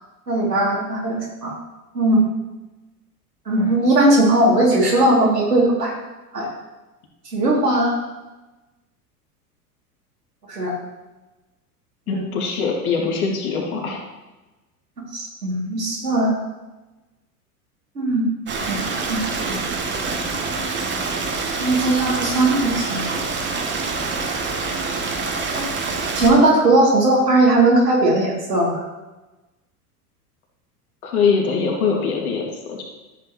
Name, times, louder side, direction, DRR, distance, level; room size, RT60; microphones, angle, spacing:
voice 1, 0.3-1.5 1.9-2.2 3.5-5.9 6.3-6.5 7.3-8.0 10.5-10.7 12.1-12.2 15.1-16.3 17.9-18.3 18.7-19.2 19.5-19.6 21.6-23.0 25.5-25.7 26.2-28.8, right 2 dB, 80° right, -3 dB, 3.0 m, -18 dB
voice 2, 12.1-14.0 31.0-32.8, left 5 dB, 65° left, -1 dB, 2.6 m, -22 dB
Stream, 18.5-26.3, right 4 dB, 25° right, 1.4 m, -26 dB
13.5 x 8.1 x 3.1 m, 1.1 s
figure-of-eight pair, 80°, 47 cm